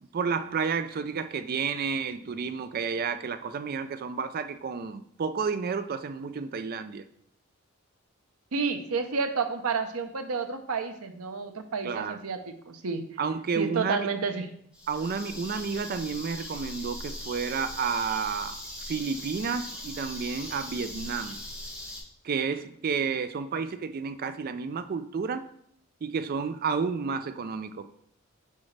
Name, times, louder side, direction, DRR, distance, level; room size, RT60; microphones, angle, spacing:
voice 1, 0.1-7.0 11.8-12.2 13.2-14.1 14.9-18.6 18.9-21.4 22.2-25.5 26.0-27.9, right 5 dB, 45° right, 12 dB, 0.4 m, -31 dB
voice 2, 8.5-13.0 13.6-14.5, right 5 dB, 90° right, 7 dB, 0.8 m, -30 dB
sound 1, 14.7-22.0, left 1 dB, 5° right, 1.9 m, -40 dB
8.0 x 4.8 x 3.3 m, 0.68 s
head